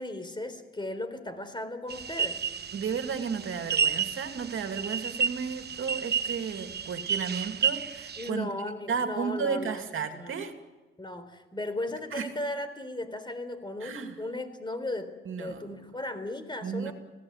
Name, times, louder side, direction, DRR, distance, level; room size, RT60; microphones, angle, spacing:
voice 1, 0.0-2.4 8.2-9.8 10.1-10.4 11.0-15.1 15.4-16.9, left 2 dB, 20° left, 10 dB, 3.9 m, -36 dB
sound 1, 1.9-8.3, right 6 dB, 50° right, 1.1 m, -31 dB
voice 2, 2.7-8.5 8.9-10.5 12.1-12.3 13.8-14.2 15.3-15.6 16.6-16.9, right 6 dB, 75° right, 5 dB, 2.6 m, -33 dB
26.0 x 17.5 x 8.2 m, 1.2 s
cardioid pair, 70°, 21 cm